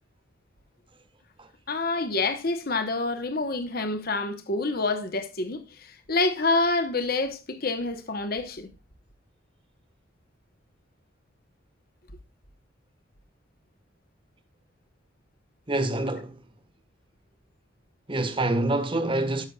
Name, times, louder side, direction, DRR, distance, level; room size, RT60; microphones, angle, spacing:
voice 1, 1.7-8.7, left 3 dB, 50° left, 1.1 m, -27 dB
voice 2, 15.7-16.3 18.1-19.5, right 2 dB, 25° right, 1.4 m, -26 dB
13.5 x 6.4 x 2.3 m
head